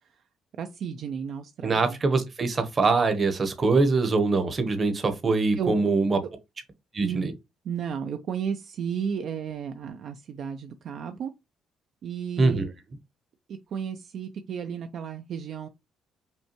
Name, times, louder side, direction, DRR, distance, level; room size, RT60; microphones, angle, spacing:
voice 1, 0.6-2.0 5.6-5.8 7.0-7.3 7.6-11.3 12.0-12.7 13.5-15.7, right 7 dB, 60° right, 0.4 m, -33 dB
voice 2, 1.6-6.2 6.9-7.3 12.4-12.7, right 3 dB, 30° right, 0.9 m, -23 dB
5.3 x 2.2 x 2.9 m
cardioid pair, 125°, 0 cm